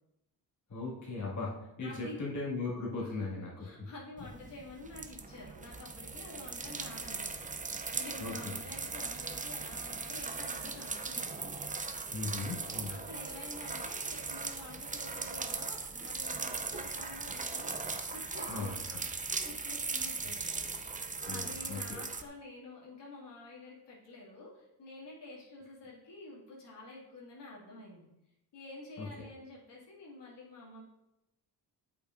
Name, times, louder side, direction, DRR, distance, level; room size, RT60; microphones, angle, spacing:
voice 1, 0.7-3.5 8.2-8.3 12.1-12.9 18.5-19.0 20.4-20.9 21.2-22.0 29.0-29.1, left 3 dB, 45° left, -5 dB, 2.0 m, -38 dB
voice 2, 1.8-2.2 3.0-11.5 12.9-17.7 18.1-28.1 28.5-30.8, left 2 dB, 70° left, -5 dB, 2.2 m, -49 dB
sound 1, 4.2-22.2, right 4 dB, 20° right, 0.5 m, -39 dB
8.2 x 5.7 x 2.5 m, 0.89 s
cardioid pair, 80°, 43 cm